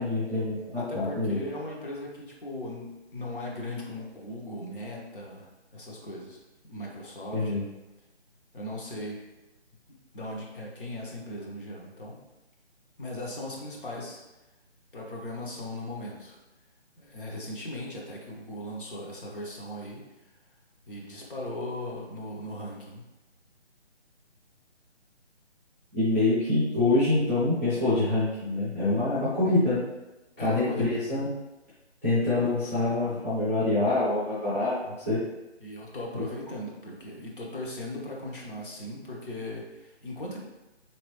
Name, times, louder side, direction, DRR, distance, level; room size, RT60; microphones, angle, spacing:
voice 1, 0.0-1.4 7.3-7.6 25.9-29.8 30.4-31.3 32.0-35.2, left 2 dB, 10° left, -13 dB, 0.7 m, -25 dB
voice 2, 0.8-6.4 6.6-7.7 8.5-9.2 10.1-12.2 13.0-14.2 14.9-16.4 17.0-20.3 20.9-23.0 30.4-31.0 35.6-40.4, left 1 dB, 50° left, -3 dB, 1.2 m, -38 dB
4.3 x 2.9 x 3.2 m, 1.0 s
figure-of-eight pair, 150°, 34 cm